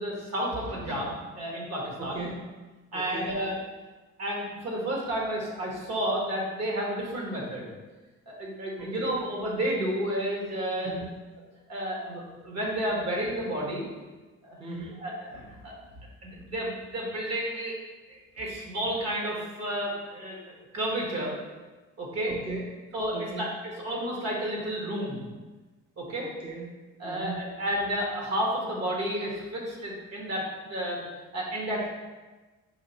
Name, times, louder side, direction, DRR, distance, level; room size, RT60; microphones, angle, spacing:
voice 1, 0.0-2.2 2.9-3.5 4.2-7.7 8.3-10.9 11.7-13.8 14.4-14.6 15.0-15.7 16.2-17.8 18.1-20.4 20.7-21.3 22.0-22.4 22.9-25.2 26.0-26.3 27.0-31.1 31.3-31.9, right 1 dB, 55° right, -2 dB, 1.4 m, -31 dB
voice 2, 2.0-2.6 2.9-3.4 8.8-9.2 10.8-11.2 14.6-15.1 22.2-22.9 23.1-23.6 26.2-27.4, right 2 dB, 20° right, -2 dB, 0.6 m, -39 dB
5.0 x 3.1 x 2.9 m, 1.3 s
cardioid pair, 90°, 30 cm